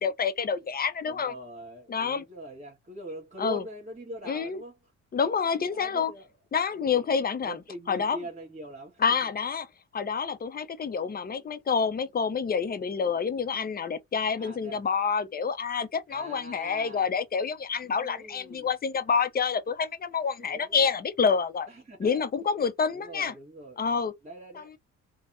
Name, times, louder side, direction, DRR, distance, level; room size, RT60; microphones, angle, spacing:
voice 1, 0.0-1.3 1.9-2.2 3.4-3.6 4.3-4.6 5.1-6.1 6.5-7.6 7.9-8.2 9.0-9.7 9.9-21.7 22.0-23.3 23.8-24.1 24.5-24.8, left 6 dB, 30° left, 0.6 m, -28 dB
voice 2, 1.0-4.8 5.6-6.3 6.7-7.0 7.4-9.1 14.4-14.8 16.1-17.1 17.8-18.7 20.4-20.9 21.7-22.2 22.9-23.8 24.2-24.7, equal, 25° right, 1.4 m, -42 dB
3.4 x 2.1 x 2.5 m
cardioid pair, 90°, 30 cm